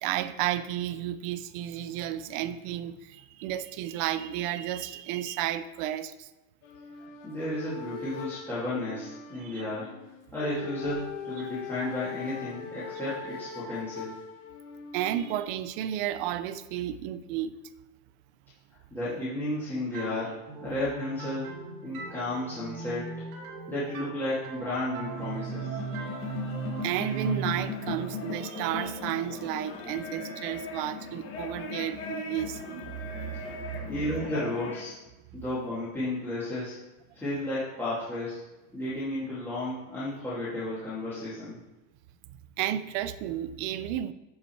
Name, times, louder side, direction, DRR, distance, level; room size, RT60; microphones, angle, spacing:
voice 1, 0.0-6.3 9.4-9.5 11.4-11.5 14.9-17.5 26.8-32.8 33.2-33.4 42.6-44.1, right 11 dB, 40° right, 0.5 m, -32 dB
sound 1, 6.6-15.4, left 6 dB, 80° left, 2.2 m, -41 dB
voice 2, 7.2-9.9 10.3-14.1 18.9-20.3 20.6-21.5 21.8-23.2 23.7-25.7 33.9-34.9 35.3-36.8 37.1-38.5 38.7-41.6, left 1 dB, 5° left, 2.3 m, -33 dB
sound 2, 19.9-29.5, right 6 dB, 75° right, 2.5 m, -39 dB
sound 3, 25.0-34.9, left 5 dB, 30° left, 1.6 m, -38 dB
13.0 x 5.7 x 4.5 m
supercardioid pair, 175°, 43 cm